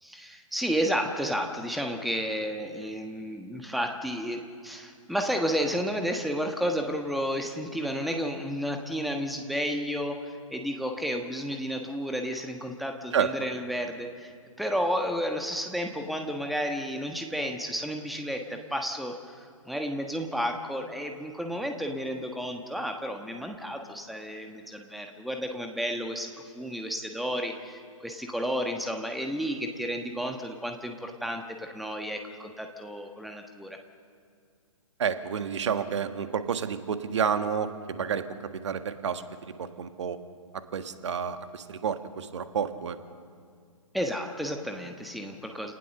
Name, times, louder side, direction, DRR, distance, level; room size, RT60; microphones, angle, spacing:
voice 1, 0.0-14.3 14.6-33.8 43.9-45.7, equal, ahead, 4 dB, 1.4 m, -32 dB
voice 2, 35.0-38.2 38.6-40.2 40.7-43.0, right 7 dB, 55° right, 9 dB, 1.7 m, -30 dB
29.0 x 19.0 x 6.7 m, 2.2 s
figure-of-eight pair, 125°, 18 cm